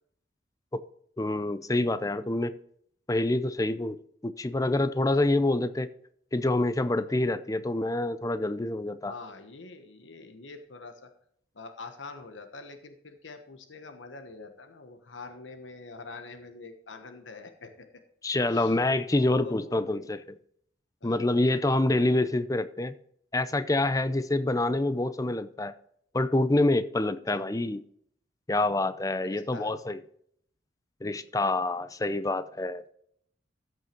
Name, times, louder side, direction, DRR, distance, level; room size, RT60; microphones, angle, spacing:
voice 1, 1.2-2.5 3.1-4.0 4.2-5.9 6.3-9.1 18.2-20.2 21.0-22.9 23.3-25.7 26.1-27.8 28.5-30.0 31.0-32.8, left 2 dB, 20° left, 0.5 m, -26 dB
voice 2, 9.0-11.1 11.5-17.9 18.5-18.8 19.2-20.1 21.0-21.7 27.3-27.4 29.2-29.7, left 3 dB, 90° left, 1.2 m, -45 dB
13.5 x 6.3 x 4.5 m
head